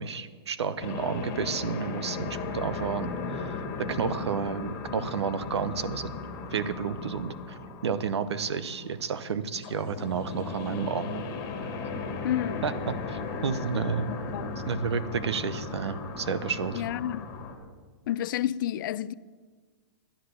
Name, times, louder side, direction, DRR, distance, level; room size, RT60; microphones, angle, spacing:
voice 1, 0.0-6.1 6.5-11.2 12.6-14.1 14.7-16.8, right 6 dB, 90° right, 0.9 m, -31 dB
sound 1, 0.8-17.5, left 4 dB, 25° left, 2.2 m, -36 dB
voice 2, 12.2-12.6 14.1-14.5 16.7-17.3 18.1-19.1, left 11 dB, 50° left, 0.4 m, -30 dB
13.0 x 10.5 x 6.7 m
hypercardioid pair, 150°, 14 cm